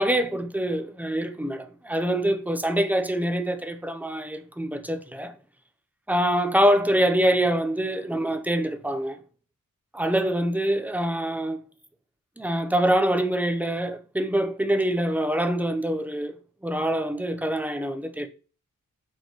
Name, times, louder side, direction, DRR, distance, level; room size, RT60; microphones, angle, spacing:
voice 1, 0.0-5.3 6.1-9.2 9.9-11.6 12.4-16.3 16.6-18.3, right 1 dB, 5° right, 0.7 m, -25 dB
4.7 x 4.6 x 4.7 m
wide cardioid pair, 90°, 34 cm